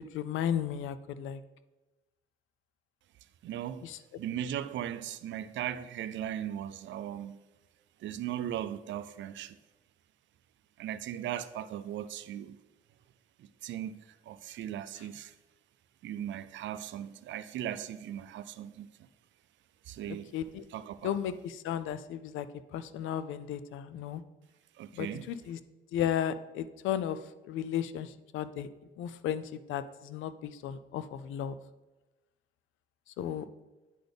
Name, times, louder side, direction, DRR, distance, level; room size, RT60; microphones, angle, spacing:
voice 1, 0.1-1.4 3.8-4.0 20.3-20.6 21.0-22.5 22.7-24.2 24.9-25.6 25.9-27.2 27.5-28.7 29.0-31.5 33.2-33.4, left 9 dB, 80° left, 0.4 m, -34 dB
voice 2, 3.4-3.9 4.2-7.4 8.0-9.6 10.8-12.6 13.4-15.3 16.0-18.9 19.9-20.3 20.7-21.1 24.8-25.3, right 11 dB, 70° right, 0.4 m, -38 dB
9.2 x 4.0 x 3.4 m
cardioid pair, 90°, 20 cm